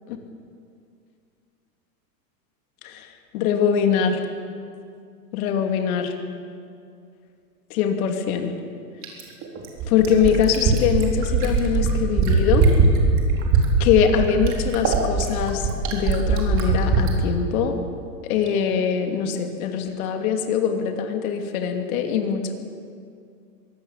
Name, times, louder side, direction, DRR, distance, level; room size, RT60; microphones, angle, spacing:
voice 1, 3.3-4.2 5.3-6.1 7.7-8.5 9.9-12.6 13.8-17.8 18.2-22.5, left 7 dB, 60° left, 4 dB, 2.8 m, -22 dB
Fill (with liquid), 9.0-17.1 18.5-18.6, right 5 dB, 35° right, 4.3 m, -20 dB
23.0 x 17.0 x 7.4 m, 2.3 s
hypercardioid pair, 130°, 50 cm